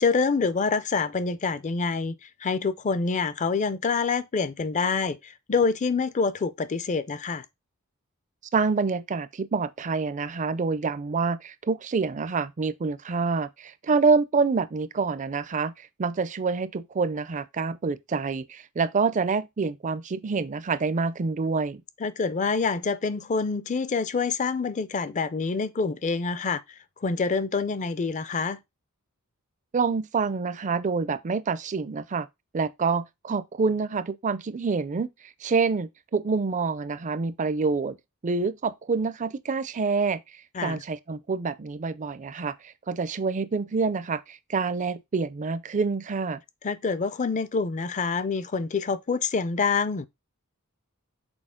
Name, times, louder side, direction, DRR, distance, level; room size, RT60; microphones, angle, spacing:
voice 1, 0.0-7.4 22.0-26.6 27.0-28.6 40.5-40.8 46.6-50.1, left 4 dB, 35° left, 0.4 m, -26 dB
voice 2, 8.5-21.8 29.7-32.3 32.5-35.1 35.4-38.0 38.2-40.2 40.6-42.6 42.9-46.4, right 4 dB, 35° right, 0.4 m, -27 dB
6.3 x 4.1 x 3.7 m
head